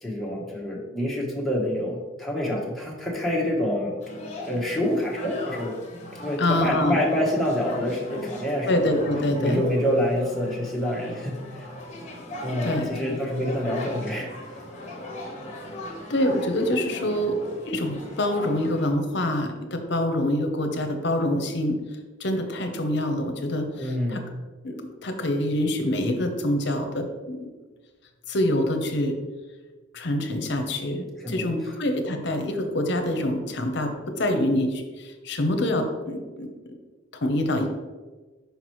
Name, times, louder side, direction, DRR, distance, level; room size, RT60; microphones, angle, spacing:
voice 1, 0.0-3.9 4.4-5.7 6.1-8.7 9.4-11.7 12.4-14.3 23.8-24.2 31.2-31.5, left 1 dB, ahead, -4 dB, 1.1 m, -27 dB
sound 1, 4.0-18.9, left 1 dB, 35° left, 1.0 m, -39 dB
voice 2, 6.4-7.0 8.7-9.6 12.6-13.2 16.1-21.8 22.2-24.2 24.6-27.5 28.3-29.2 29.9-36.5 37.1-37.7, left 1 dB, 60° left, 5 dB, 0.7 m, -26 dB
5.9 x 5.3 x 3.1 m, 1.3 s
head